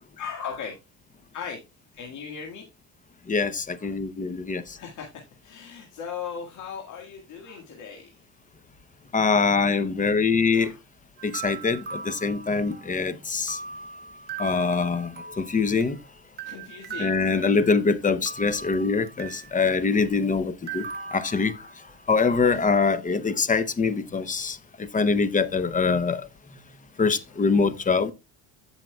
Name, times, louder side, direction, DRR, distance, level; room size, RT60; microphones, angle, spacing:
voice 1, 0.2-0.8 1.3-1.6 1.9-2.7 3.8-4.0 4.8-5.1 5.4-8.2 10.5-10.8 12.7-12.9 13.4-13.5 15.9-17.5 21.8-22.1 22.4-22.9 25.6-25.7, left 6 dB, 60° left, 1.8 m, -38 dB
voice 2, 3.3-4.6 9.1-10.7 11.2-13.6 14.4-15.1 15.4-16.0 17.0-20.8 21.1-21.5 22.1-24.6 24.9-26.2 27.0-28.1, left 4 dB, 25° left, 0.7 m, -23 dB
sound 1, 11.2-13.1 13.5-16.0 16.4-17.9 18.3-19.6 20.7-22.1, right 5 dB, 30° right, 0.8 m, -39 dB
15.0 x 5.7 x 2.3 m
cardioid pair, 120°, 34 cm